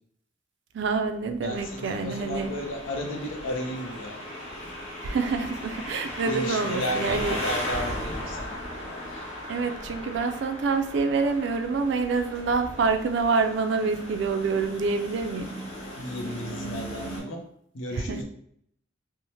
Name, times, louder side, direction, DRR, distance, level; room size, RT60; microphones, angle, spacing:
voice 1, 0.7-2.5 5.0-7.6 9.5-15.5 17.9-18.2, right 4 dB, 60° right, 6 dB, 0.3 m, -27 dB
voice 2, 1.4-4.2 6.3-8.6 16.0-17.4 17.7-18.2, equal, 80° left, 2 dB, 0.6 m, -33 dB
sound 1, 1.5-17.2, equal, 35° left, 1.1 m, -37 dB
2.7 x 2.0 x 3.0 m, 0.68 s
head